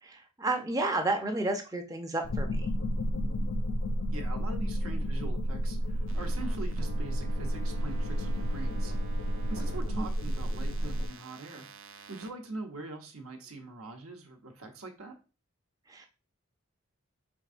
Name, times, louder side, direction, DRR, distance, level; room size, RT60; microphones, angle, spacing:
voice 1, 0.0-2.7 9.9-10.1 15.9-16.1, right 2 dB, 15° right, 5 dB, 0.5 m, -31 dB
sound 1, 2.2-11.1, equal, 60° left, 0.4 m, -31 dB
voice 2, 4.1-8.9 9.5-11.7 12.1-15.2, right 2 dB, 85° right, 4 dB, 0.9 m, -43 dB
sound 2, 6.1-12.3, right 3 dB, 70° right, 0.4 m, -47 dB
4.5 x 3.6 x 2.5 m, 0.31 s
head